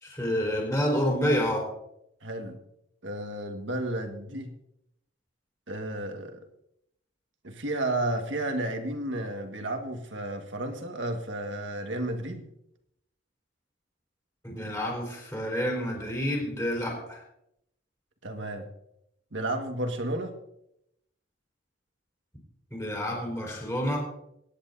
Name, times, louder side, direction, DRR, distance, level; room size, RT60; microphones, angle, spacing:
voice 1, 0.0-1.7 14.4-17.2 22.7-24.0, equal, 15° left, -1 dB, 4.3 m, -28 dB
voice 2, 2.2-2.6 3.0-4.5 5.7-6.4 7.4-12.4 18.2-18.7 19.3-20.3, right 1 dB, 70° right, 5 dB, 1.7 m, -32 dB
23.5 x 10.0 x 2.7 m, 0.78 s
head